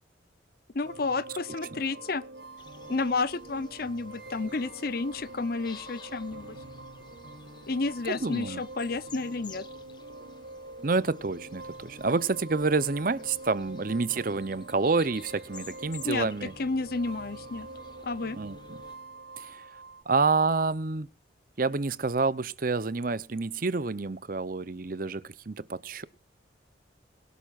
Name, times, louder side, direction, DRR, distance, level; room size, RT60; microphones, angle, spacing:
voice 1, 0.7-2.2 2.9-6.6 7.7-9.6 16.0-16.3 16.6-17.7 18.0-18.4, left 3 dB, 50° left, 0.7 m, -31 dB
sound 1, 0.8-20.0, right 2 dB, 65° right, 6.3 m, -45 dB
sound 2, 2.6-18.9, left 4 dB, 25° left, 1.3 m, -52 dB
voice 2, 8.1-8.6 10.8-16.5 18.4-18.6 19.4-19.6 20.1-21.1 21.6-26.0, right 4 dB, 45° right, 0.7 m, -28 dB
22.5 x 12.0 x 2.5 m
head